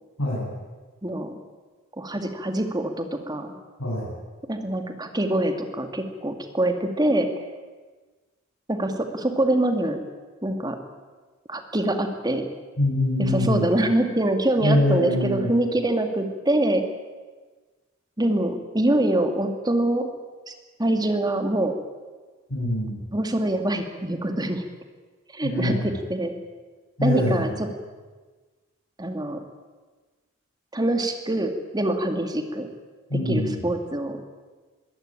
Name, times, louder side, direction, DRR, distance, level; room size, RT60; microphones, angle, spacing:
voice 1, 0.2-0.5 3.8-4.1 12.8-13.7 14.6-15.5 22.5-23.0 25.4-25.9 27.0-27.5 33.1-33.6, left 1 dB, 90° left, -5 dB, 8.0 m, -24 dB
voice 2, 1.0-1.3 2.0-3.5 4.5-7.3 8.7-10.0 10.4-10.8 11.5-12.5 13.2-16.9 18.2-20.1 20.5-20.6 20.8-21.8 23.1-24.6 25.3-26.4 27.0-27.7 29.0-29.4 30.7-32.7 33.1-34.2, right 1 dB, 20° right, 6 dB, 2.2 m, -24 dB
22.5 x 16.5 x 9.0 m, 1.4 s
head